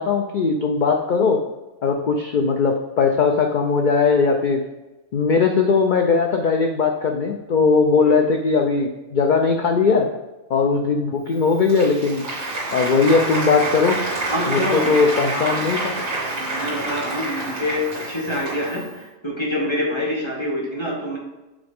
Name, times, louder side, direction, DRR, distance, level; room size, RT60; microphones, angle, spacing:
voice 1, 0.0-1.4 1.8-4.6 5.1-10.1 10.5-12.2 12.7-14.0 14.5-15.9, left 4 dB, 70° left, 3 dB, 0.4 m, -19 dB
Applause, 11.3-18.9, right 2 dB, 90° right, 2.3 m, -28 dB
voice 2, 14.3-14.9 15.3-15.6 16.3-21.2, left 1 dB, 20° left, -4 dB, 1.0 m, -26 dB
7.1 x 3.9 x 3.5 m, 1.1 s
omnidirectional pair, 1.4 m